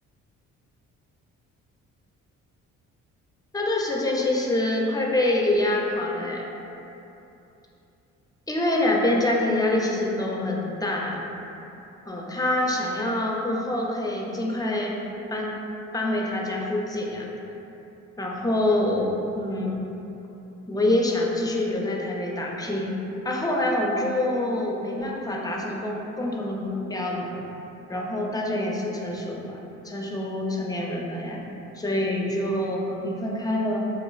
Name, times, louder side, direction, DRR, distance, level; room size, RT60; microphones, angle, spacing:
voice 1, 3.5-6.5 8.5-11.2 12.1-15.0 15.3-15.6 15.9-17.3 18.2-19.9 20.7-23.0 23.2-27.4 27.9-31.4 31.8-33.8, left 1 dB, 15° left, -2 dB, 0.4 m, -26 dB
4.1 x 2.4 x 2.3 m, 3.0 s
cardioid pair, 90°, 30 cm